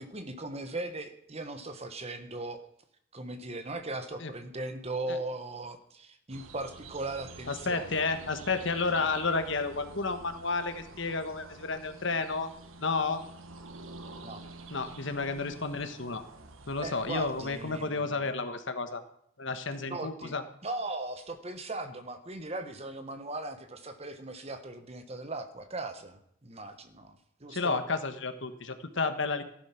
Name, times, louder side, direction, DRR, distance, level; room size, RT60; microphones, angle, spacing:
voice 1, 0.0-2.6 3.1-8.0 14.2-14.4 16.8-18.2 19.9-20.3 20.6-27.8, right 2 dB, 30° right, 8 dB, 1.3 m, -38 dB
sound 1, 6.3-17.9, right 3 dB, 75° right, 1.4 m, -48 dB
voice 2, 7.5-12.5 12.8-13.2 14.7-16.2 16.7-19.0 19.4-20.4 27.5-29.4, left 4 dB, 60° left, 9 dB, 1.4 m, -31 dB
14.5 x 11.5 x 5.9 m, 0.69 s
head